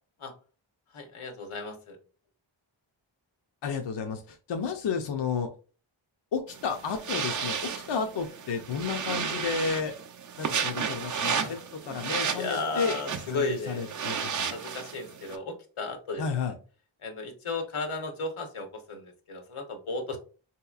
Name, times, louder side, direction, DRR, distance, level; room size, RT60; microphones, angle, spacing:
voice 1, 0.9-2.0 11.2-11.5 12.3-14.0 14.5-16.5 17.0-20.2, left 3 dB, 80° left, 5 dB, 0.9 m, -35 dB
voice 2, 3.6-5.5 6.3-9.9 10.4-11.6 11.9-13.0 13.3-14.5 16.2-16.5, left 6 dB, 60° left, 4 dB, 0.6 m, -32 dB
sound 1, 6.5-15.4, right 6 dB, 40° right, 0.4 m, -33 dB
3.8 x 2.8 x 2.3 m, 0.35 s
wide cardioid pair, 90°, 48 cm